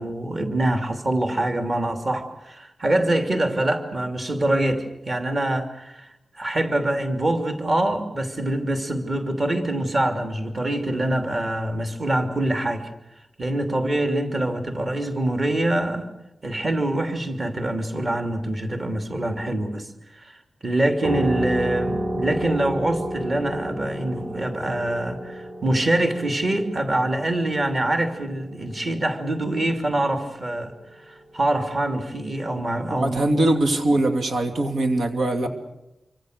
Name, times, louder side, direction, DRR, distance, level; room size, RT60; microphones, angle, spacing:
voice 1, 0.0-6.1 6.3-12.9 13.4-16.1 16.4-33.4, right 1 dB, 30° right, 5 dB, 2.9 m, -25 dB
sound 1, 21.0-30.2, equal, 45° right, 3.4 m, -32 dB
voice 2, 32.9-35.5, right 1 dB, 85° right, 5 dB, 2.7 m, -22 dB
27.0 x 25.5 x 6.7 m, 0.90 s
wide cardioid pair, 150°, 0 cm